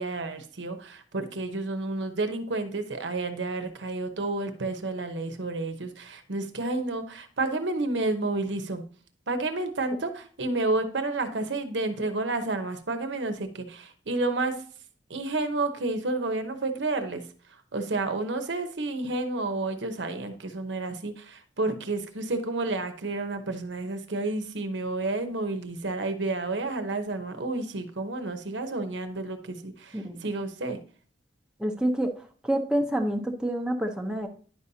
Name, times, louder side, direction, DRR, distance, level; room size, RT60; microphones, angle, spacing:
voice 1, 0.0-8.8 9.3-14.6 15.1-17.2 17.7-30.8, right 2 dB, 75° right, 8 dB, 0.9 m, -30 dB
voice 2, 31.6-32.1 32.4-34.3, right 1 dB, 5° right, 3 dB, 0.8 m, -27 dB
10.0 x 5.4 x 2.8 m, 0.42 s
head